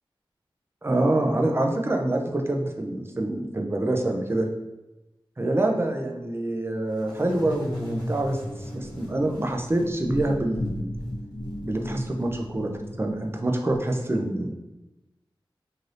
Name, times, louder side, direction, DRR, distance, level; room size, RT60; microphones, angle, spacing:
voice 1, 0.8-4.5 5.4-10.9 11.6-12.7 13.0-14.5, right 1 dB, 25° right, 2 dB, 0.5 m, -26 dB
sound 1, 7.0-13.8, left 1 dB, 55° left, 0.9 m, -35 dB
3.2 x 2.6 x 2.5 m, 1.0 s
cardioid pair, 45°, 9 cm